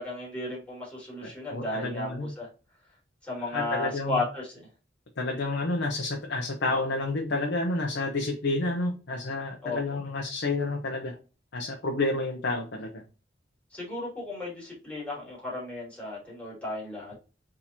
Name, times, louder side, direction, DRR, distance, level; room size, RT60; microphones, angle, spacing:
voice 1, 0.0-2.1 2.4-2.5 3.2-4.7 9.6-9.8 13.7-17.1, left 2 dB, 5° left, -6 dB, 2.5 m, -34 dB
voice 2, 1.2-2.3 3.5-4.2 5.2-11.2 11.5-13.0, left 2 dB, 65° left, 1 dB, 0.8 m, -30 dB
4.2 x 3.6 x 2.9 m, 0.33 s
head